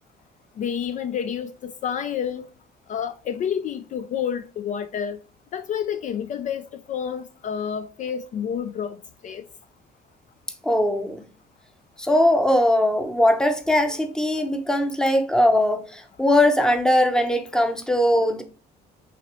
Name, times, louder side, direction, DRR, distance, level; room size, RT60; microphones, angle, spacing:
voice 1, 0.6-2.5 2.9-5.2 5.5-9.0 9.2-9.4, left 8 dB, 45° left, 0.4 m, -29 dB
voice 2, 10.6-11.2 12.0-18.4, left 1 dB, 5° left, 0.7 m, -20 dB
5.7 x 3.0 x 3.0 m
cardioid pair, 110°, 17 cm